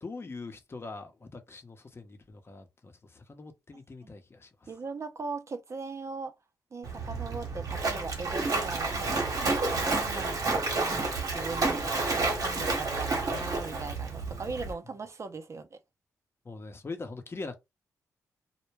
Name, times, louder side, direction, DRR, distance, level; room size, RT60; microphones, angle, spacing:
voice 1, 0.0-4.7 9.3-9.6 16.4-17.6, left 3 dB, 35° left, 0.7 m, -43 dB
voice 2, 4.7-6.3 6.7-10.4 10.7-11.8 12.1-15.8, right 4 dB, 45° right, 0.6 m, -39 dB
Splash splatter, 6.8-14.7, right 3 dB, 60° right, 1.0 m, -30 dB
2.2 x 2.1 x 3.1 m
supercardioid pair, 50°, 7 cm